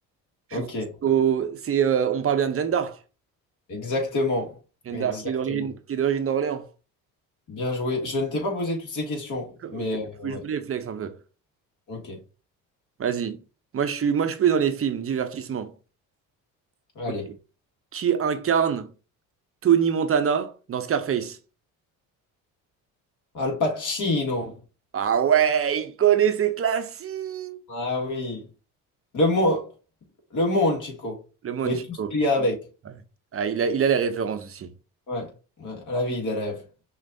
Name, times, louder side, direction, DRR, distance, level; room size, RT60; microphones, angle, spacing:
voice 1, 0.5-0.9 3.7-4.5 4.9-5.7 7.5-10.4 11.9-12.2 17.0-17.3 23.3-24.6 27.7-28.4 29.1-29.7 30.3-31.2 31.6-32.5 35.1-35.3 35.6-36.6, left 2 dB, 45° left, 1.9 m, -27 dB
voice 2, 1.0-3.0 4.9-6.6 9.6-9.9 10.2-11.1 13.0-13.4 13.7-15.7 17.9-18.9 19.6-21.4 24.9-27.6 31.4-32.1 33.3-34.7, right 8 dB, 35° right, 0.7 m, -24 dB
6.0 x 2.5 x 2.6 m
hypercardioid pair, 65°, 42 cm